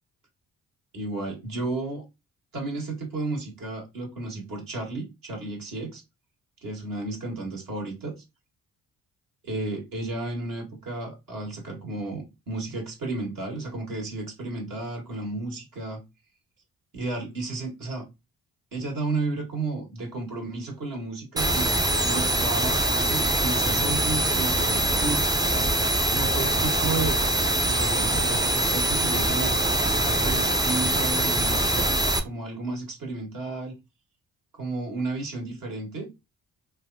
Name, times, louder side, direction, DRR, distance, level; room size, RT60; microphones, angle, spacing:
voice 1, 0.9-2.0 2.5-6.0 6.6-8.1 9.4-16.0 16.9-18.1 18.7-25.2 26.1-27.2 27.7-31.9 32.2-33.7 34.5-36.1, right 3 dB, 55° right, 1.5 m, -33 dB
sound 1, 21.4-32.2, right 1 dB, 10° right, 0.4 m, -23 dB
3.0 x 2.3 x 2.6 m
hypercardioid pair, 40°, 40 cm